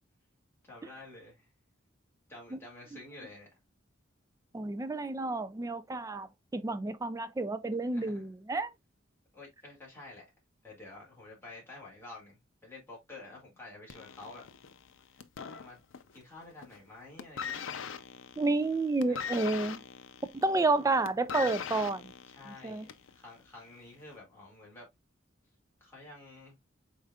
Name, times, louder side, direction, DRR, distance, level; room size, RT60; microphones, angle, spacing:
voice 1, 0.6-1.5 2.3-3.5 7.9-8.2 9.3-10.3 10.6-14.4 15.1-15.8 16.1-17.7 19.1-19.6 22.3-24.9 25.8-26.6, left 2 dB, 10° left, 2.2 m, -50 dB
voice 2, 4.5-8.7 18.4-19.8 20.3-22.1 22.5-22.9, right 2 dB, 15° right, 0.3 m, -30 dB
sound 1, 13.9-16.2 16.5-16.9 17.2-23.1 24.0-24.1, left 7 dB, 70° left, 0.5 m, -41 dB
4.9 x 4.3 x 2.3 m
head